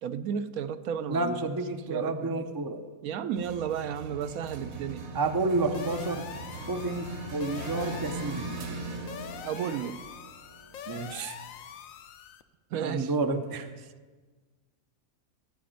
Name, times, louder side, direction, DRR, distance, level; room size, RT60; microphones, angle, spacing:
voice 1, 0.0-2.4 3.0-5.1 9.4-10.0 12.7-13.1, right 8 dB, 80° right, 12 dB, 1.0 m, -33 dB
voice 2, 1.1-2.8 5.1-6.3 6.7-8.5 10.9-11.4 12.7-13.7, right 3 dB, 35° right, 8 dB, 0.3 m, -30 dB
sound 1, 3.4-11.3, right 3 dB, 55° right, 1.2 m, -39 dB
sound 2, 5.7-12.4, left 9 dB, 75° left, 1.0 m, -44 dB
13.5 x 5.1 x 8.9 m, 1.4 s
omnidirectional pair, 1.5 m